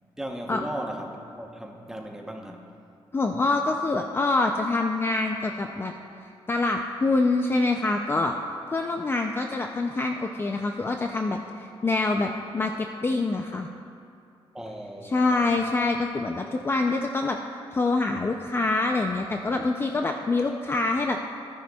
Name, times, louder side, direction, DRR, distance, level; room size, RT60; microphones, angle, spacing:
voice 1, 0.2-2.6 14.5-15.6, right 1 dB, 5° right, 1 dB, 0.9 m, -37 dB
voice 2, 3.1-5.9 6.2-8.4 8.7-13.7 15.0-17.4 17.7-21.2, left 3 dB, 25° left, 3 dB, 0.4 m, -25 dB
14.0 x 10.0 x 2.3 m, 2.4 s
wide cardioid pair, 135°, 10 cm